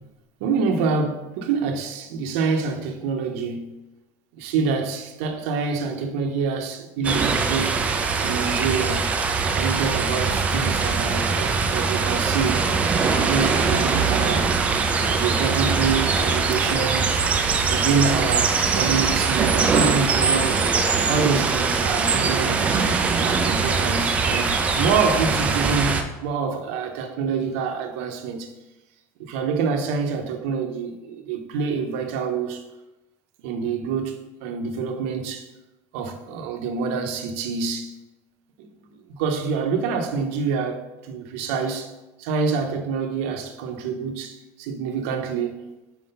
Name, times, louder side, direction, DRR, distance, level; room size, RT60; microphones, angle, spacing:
voice 1, 0.4-3.8 4.3-7.7 8.2-9.1 9.5-12.7 13.1-14.6 15.0-17.1 17.7-20.6 21.1-22.6 23.2-28.5 29.2-32.6 33.4-35.5 35.9-37.9 38.6-38.7 39.2-41.9 42.2-45.6, right 5 dB, 70° right, 0.8 m, -26 dB
sound 1, 7.0-26.0, right 5 dB, 20° right, 0.4 m, -22 dB
4.7 x 3.9 x 5.3 m
cardioid pair, 170°, 7 cm